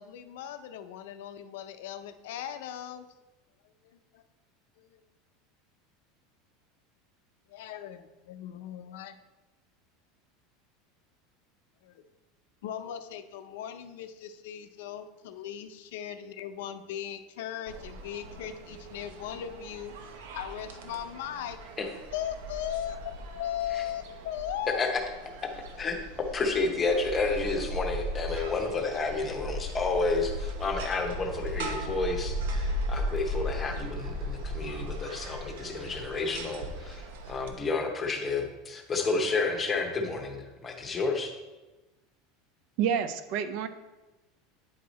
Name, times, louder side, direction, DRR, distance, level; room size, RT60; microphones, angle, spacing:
voice 1, 0.0-3.1 3.8-4.2 4.8-5.0 7.5-9.2 11.8-12.0 12.6-19.9 20.3-21.6 22.1-23.0 23.3-24.8, left 10 dB, 70° left, 9 dB, 0.5 m, -38 dB
sound 1, 17.7-37.5, equal, 85° right, 0.9 m, -37 dB
voice 2, 26.3-41.3, left 3 dB, 15° left, 3 dB, 0.8 m, -30 dB
voice 3, 42.8-43.7, right 8 dB, 45° right, 11 dB, 0.4 m, -28 dB
9.3 x 4.7 x 4.1 m, 1.1 s
supercardioid pair, 175°, 0 cm